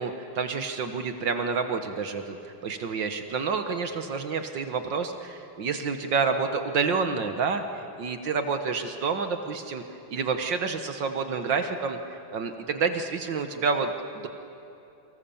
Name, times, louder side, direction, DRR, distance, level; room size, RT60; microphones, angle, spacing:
voice 1, 0.0-9.8 10.1-14.3, right 5 dB, 65° right, 7 dB, 1.9 m, -29 dB
30.0 x 24.5 x 7.1 m, 2.9 s
omnidirectional pair, 2.2 m